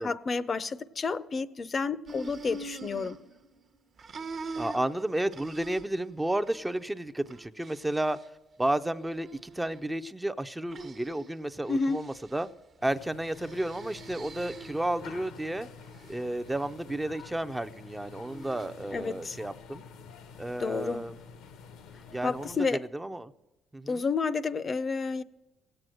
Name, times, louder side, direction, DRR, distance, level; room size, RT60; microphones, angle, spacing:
voice 1, 0.0-3.2 11.7-12.0 18.9-19.4 20.6-21.1 21.9-22.8 23.9-25.2, left 4 dB, 35° left, 0.6 m, -30 dB
sound 1, 2.0-3.7 4.0-6.1 6.4-6.8 7.2-8.2 9.0-9.8 10.7-11.3 11.7-12.4 13.2-14.9 15.4-16.2 18.0-18.7, right 3 dB, 45° right, 0.8 m, -44 dB
voice 2, 4.6-8.2 8.6-12.5 12.8-15.7 16.1-19.8 20.4-21.2 22.1-23.3 23.7-24.0, right 1 dB, 10° right, 0.5 m, -32 dB
sound 2, 12.8-22.6, left 6 dB, 90° left, 1.0 m, -49 dB
17.0 x 7.8 x 7.6 m
cardioid pair, 105°, 0 cm